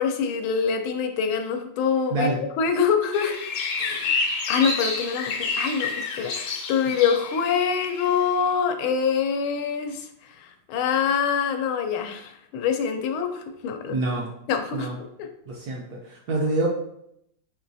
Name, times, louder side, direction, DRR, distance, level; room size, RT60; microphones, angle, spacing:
voice 1, 0.0-3.4 3.8-4.2 4.5-10.1 10.4-13.9 14.5-14.9 15.2-15.3, left 6 dB, 90° left, 6 dB, 1.4 m, -25 dB
voice 2, 2.1-2.4 13.9-14.3 14.7-15.0 15.5-16.7, right 2 dB, 70° right, -2 dB, 0.9 m, -26 dB
sound 1, 3.1-8.4, left 4 dB, 70° left, 1.1 m, -29 dB
4.7 x 3.0 x 2.6 m, 0.76 s
omnidirectional pair, 2.2 m